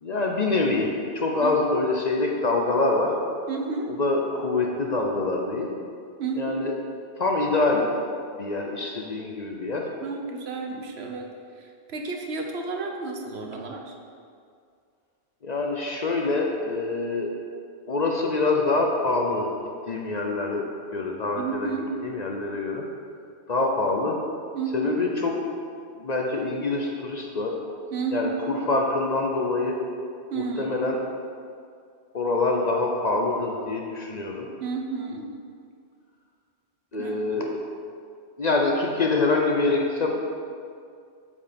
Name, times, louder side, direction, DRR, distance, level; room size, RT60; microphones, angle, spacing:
voice 1, 0.0-3.1 3.9-5.7 6.4-6.7 7.2-8.0 8.4-9.9 15.4-17.3 17.9-19.5 19.9-22.8 23.5-24.2 24.7-25.3 26.0-27.6 28.1-29.8 30.3-31.0 32.1-34.5 36.9-37.5 38.4-40.1, left 3 dB, 45° left, 0 dB, 0.7 m, -25 dB
voice 2, 3.5-3.9 6.2-6.7 10.0-11.3 11.5-13.9 21.4-21.9 24.5-25.0 27.9-28.6 30.3-30.7 34.6-35.3 36.9-37.2, right 4 dB, 70° right, 2 dB, 1.1 m, -31 dB
8.3 x 4.7 x 5.2 m, 2.3 s
omnidirectional pair, 1.1 m